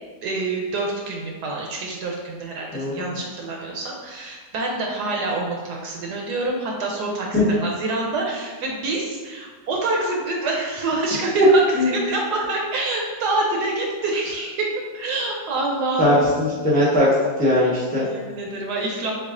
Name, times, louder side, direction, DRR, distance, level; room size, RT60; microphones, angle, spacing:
voice 1, 0.2-11.6 11.9-14.7 14.9-16.6 18.0-19.1, right 2 dB, 70° right, -1 dB, 1.1 m, -26 dB
voice 2, 2.7-3.0 7.3-7.4 11.4-11.5 11.8-11.9 16.0-17.1 17.4-18.0, left 1 dB, 10° left, -7 dB, 0.5 m, -19 dB
7.0 x 2.4 x 2.4 m, 1.4 s
omnidirectional pair, 2.0 m